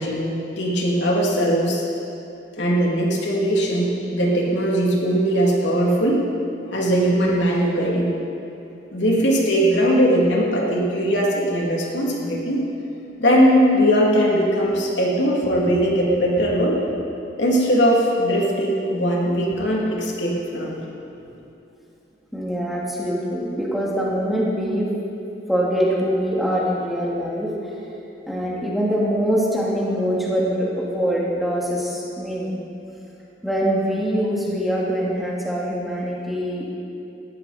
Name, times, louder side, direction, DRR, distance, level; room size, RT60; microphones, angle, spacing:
voice 1, 0.0-1.8 2.6-6.2 6.7-8.2 8.9-12.7 13.2-16.8 17.4-20.8, equal, 85° left, -3 dB, 2.9 m, -20 dB
voice 2, 22.3-24.9 25.5-27.5 28.3-32.6 33.4-36.8, equal, ahead, -5 dB, 2.5 m, -23 dB
18.5 x 14.0 x 4.4 m, 2.8 s
head